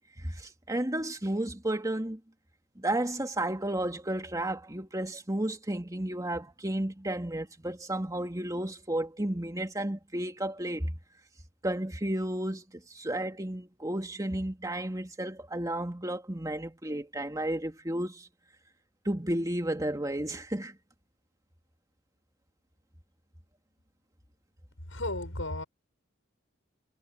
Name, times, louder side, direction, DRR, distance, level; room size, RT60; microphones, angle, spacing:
voice 1, 0.0-2.2 2.8-10.9 11.6-18.3 19.0-20.8, right 1 dB, 20° right, 2.6 m, -32 dB
voice 2, 24.9-25.6, left 2 dB, 90° left, 7.1 m, -34 dB
head